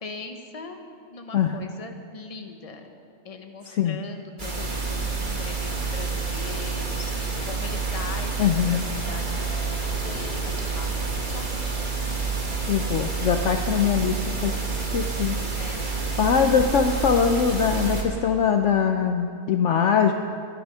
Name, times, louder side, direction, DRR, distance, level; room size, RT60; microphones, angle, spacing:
voice 1, 0.0-0.8 1.1-2.8 3.2-11.9 15.6-16.0, left 4 dB, 25° left, 5 dB, 1.1 m, -41 dB
sound 1, 4.4-18.0, right 4 dB, 35° right, 1.8 m, -28 dB
sound 2, 8.2-12.1 12.5-16.1, equal, 90° right, 5.6 m, -48 dB
voice 2, 8.4-8.8 12.7-14.5 14.8-15.4 15.8-20.1, left 7 dB, 60° left, 6 dB, 0.9 m, -22 dB
23.0 x 9.6 x 5.6 m, 2.5 s
omnidirectional pair, 1.5 m